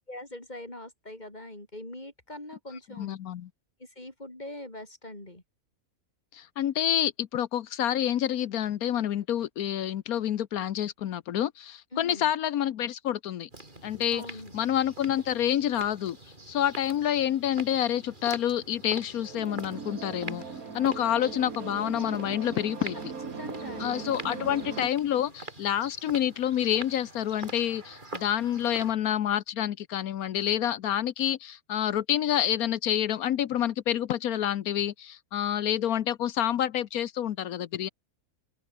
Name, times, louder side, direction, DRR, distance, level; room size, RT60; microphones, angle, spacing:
voice 1, 0.1-3.2 3.8-5.4 11.9-12.3 14.1-14.5 22.9-23.0 23.4-24.5, left 1 dB, 30° left, 4.3 m, -42 dB
voice 2, 3.0-3.5 6.3-13.5 13.8-14.2 14.5-16.2 16.5-20.4 20.7-23.0 23.8-37.9, left 10 dB, 80° left, 1.3 m, -28 dB
sound 1, 13.5-28.9, right 2 dB, 30° right, 4.1 m, -45 dB
sound 2, 19.1-24.9, right 5 dB, 70° right, 2.7 m, -39 dB
open air
omnidirectional pair, 1.5 m